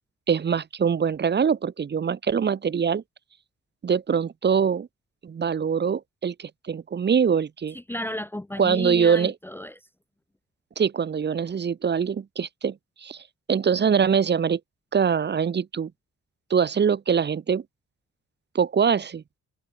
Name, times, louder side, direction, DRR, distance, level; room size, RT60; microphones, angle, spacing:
voice 1, 0.3-3.0 3.8-4.9 5.2-7.8 8.6-9.3 10.8-14.6 14.9-15.9 16.5-17.6 18.5-19.2, right 7 dB, 35° right, 1.3 m, -23 dB
voice 2, 7.7-9.7, left 1 dB, 5° left, 0.8 m, -33 dB
wide cardioid pair, 170°, 31 cm